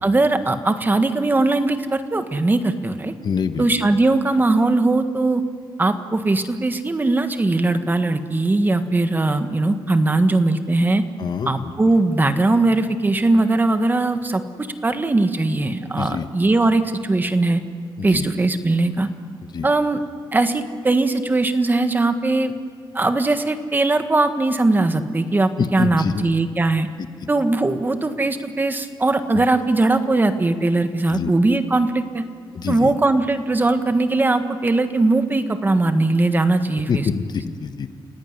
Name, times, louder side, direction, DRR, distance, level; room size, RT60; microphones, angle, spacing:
voice 1, 0.0-3.1 3.6-5.4 5.8-11.0 11.5-17.6 18.0-19.1 19.6-20.0 20.3-22.5 22.9-26.9 27.3-32.2 32.7-37.1, right 2 dB, 20° right, 8 dB, 1.5 m, -20 dB
voice 2, 3.2-3.7 11.2-11.7 16.0-16.3 18.0-18.3 19.5-19.7 25.6-26.3 27.0-27.3 29.3-29.4 31.1-31.3 32.5-32.9 36.9-37.9, left 6 dB, 55° left, 9 dB, 1.3 m, -26 dB
29.5 x 17.5 x 9.6 m, 2.1 s
cardioid pair, 120°, 9 cm